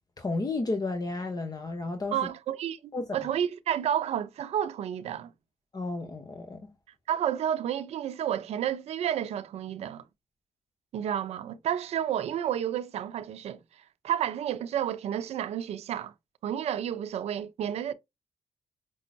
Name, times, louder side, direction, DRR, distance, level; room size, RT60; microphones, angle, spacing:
voice 1, 0.2-2.2 2.9-3.1 5.7-6.7, left 2 dB, 35° left, 0.8 m, -32 dB
voice 2, 2.1-5.3 7.1-10.0 10.9-13.6 14.0-16.1 16.4-17.9, right 10 dB, 75° right, 0.5 m, -31 dB
5.4 x 2.0 x 2.6 m
supercardioid pair, 55°, 11 cm